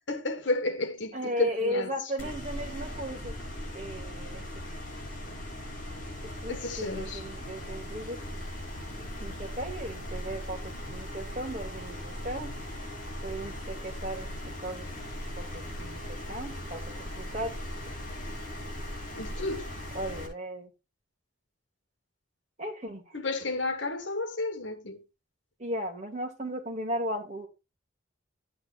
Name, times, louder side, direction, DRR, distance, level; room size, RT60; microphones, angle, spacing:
voice 1, 0.0-1.9 6.5-7.2 19.2-19.7 23.1-25.0, left 2 dB, 65° left, 1.7 m, -32 dB
voice 2, 1.1-3.4 3.7-4.4 6.2-8.4 9.0-12.5 13.2-15.0 15.4-17.6 19.9-20.7 22.6-23.0 25.6-27.5, equal, 35° right, 2.7 m, -36 dB
sound 1, 2.2-20.3, left 1 dB, 45° left, 5.8 m, -39 dB
12.5 x 9.7 x 2.6 m
head